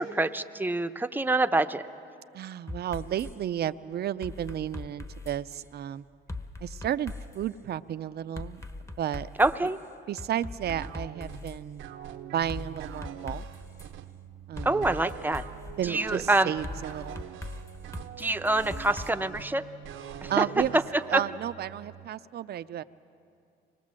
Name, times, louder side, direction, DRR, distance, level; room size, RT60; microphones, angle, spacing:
voice 1, 0.0-1.8 9.4-9.8 14.6-15.4 15.8-16.5 18.2-19.7 20.2-20.5 20.7-21.2, right 2 dB, 10° right, 9 dB, 0.7 m, -26 dB
voice 2, 2.3-6.0 6.6-8.6 9.0-9.3 10.1-11.9 12.3-13.5 14.5-14.9 15.8-17.2 20.3-20.8 21.1-22.8, right 10 dB, 55° right, 13 dB, 0.5 m, -32 dB
sound 1, 2.7-3.3 4.2-5.7 6.3-7.5 8.4-9.7 10.2-11.6 12.5-13.9 14.6-15.7 16.6-19.1, left 2 dB, 15° left, 1.1 m, -40 dB
sound 2, 10.6-22.1, right 10 dB, 85° right, 0.8 m, -44 dB
25.0 x 19.5 x 7.5 m, 2.5 s
cardioid pair, 90°, 20 cm